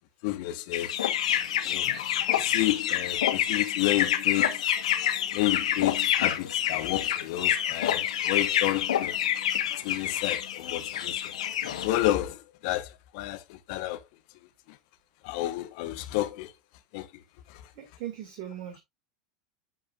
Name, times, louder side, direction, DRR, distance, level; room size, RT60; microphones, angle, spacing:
voice 1, 0.2-0.9 1.6-1.9 2.3-4.6 5.3-9.2 9.8-11.3 11.8-14.0 14.7-14.8 15.2-16.5 16.9-17.2 17.5-17.7, left 16 dB, 60° left, 1.3 m, -31 dB
sound 1, 0.7-12.1, left 10 dB, 75° left, 1.4 m, -27 dB
voice 2, 17.8-18.8, right 11 dB, 50° right, 2.4 m, -39 dB
11.5 x 5.1 x 2.6 m
hypercardioid pair, 90°, 4 cm